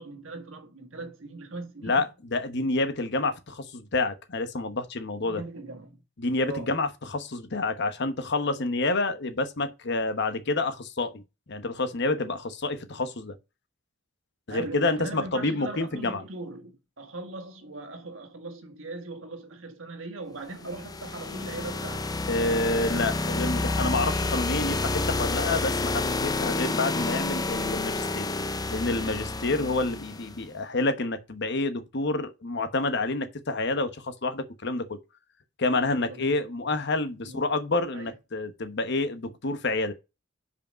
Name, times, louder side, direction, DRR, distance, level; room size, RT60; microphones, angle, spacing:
voice 1, 0.0-2.1 5.2-6.0 6.4-6.8 14.5-22.1 35.9-36.3 36.6-36.7 37.2-37.5 37.9-38.1, right 3 dB, 85° right, 1.6 m, -39 dB
voice 2, 1.8-5.4 6.2-11.2 11.5-13.3 14.5-16.2 22.3-28.3 28.7-35.0 35.6-39.9, left 2 dB, 60° left, 1.0 m, -28 dB
sound 1, 20.6-30.4, left 2 dB, 20° left, 0.5 m, -29 dB
5.6 x 5.0 x 5.2 m
head